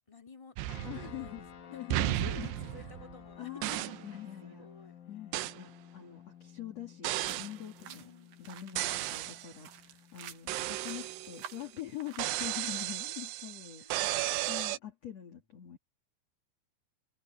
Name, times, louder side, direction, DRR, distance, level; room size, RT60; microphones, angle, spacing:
voice 1, 0.1-4.9 7.8-8.5 13.8-14.1, left 3 dB, 5° left, 3.8 m, -53 dB
sound 1, 0.6-1.5 1.9-3.2 3.6-4.1 5.3-5.6 7.0-7.6 8.8-9.5 10.5-11.6 12.2-14.8, right 16 dB, 90° right, 2.4 m, -34 dB
sound 2, 0.7-11.3, left 9 dB, 70° left, 6.3 m, -54 dB
voice 2, 0.8-1.5 1.7-2.5 2.8-2.9 3.4-4.7 5.1-8.1 8.4-15.8, left 12 dB, 40° left, 2.7 m, -44 dB
sound 3, 7.3-12.3, right 10 dB, 65° right, 2.6 m, -51 dB
omnidirectional pair, 5.9 m